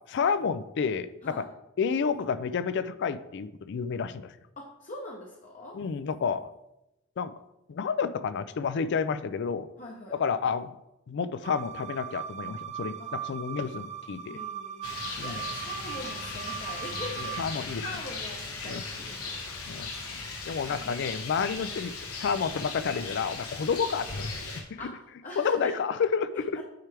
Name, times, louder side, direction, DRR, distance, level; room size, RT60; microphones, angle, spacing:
voice 1, 0.1-1.5 1.8-4.4 5.7-6.5 7.2-7.3 7.7-9.7 10.1-10.8 11.1-14.4 15.2-15.4 17.2-17.8 18.7-18.8 19.7-19.9 20.5-24.9 25.4-26.6, left 6 dB, 55° left, 14 dB, 0.4 m, -30 dB
voice 2, 4.6-5.8 9.8-10.2 13.0-13.1 14.3-17.4 17.8-19.4 20.2-20.3 20.7-21.0 24.8-25.7 26.3-26.6, left 2 dB, 35° left, -1 dB, 0.8 m, -42 dB
sound 1, 11.4-17.4, right 10 dB, 30° right, 0.4 m, -39 dB
Rain, 14.8-24.6, left 3 dB, 90° left, 1.3 m, -38 dB
9.2 x 4.4 x 3.4 m, 0.91 s
head